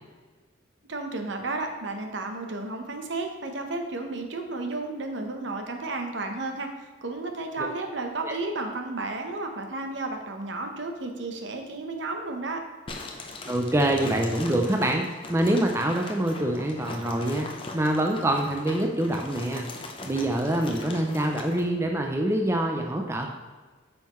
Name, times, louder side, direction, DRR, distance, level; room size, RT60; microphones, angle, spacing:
voice 1, 0.9-12.6, right 2 dB, 70° right, 4 dB, 0.9 m, -33 dB
sound 1, 12.9-21.7, left 2 dB, 25° left, 0.6 m, -40 dB
voice 2, 13.5-17.5 17.7-19.7 20.0-23.3, right 1 dB, 15° right, 2 dB, 0.5 m, -25 dB
8.9 x 5.6 x 3.1 m, 1.4 s
head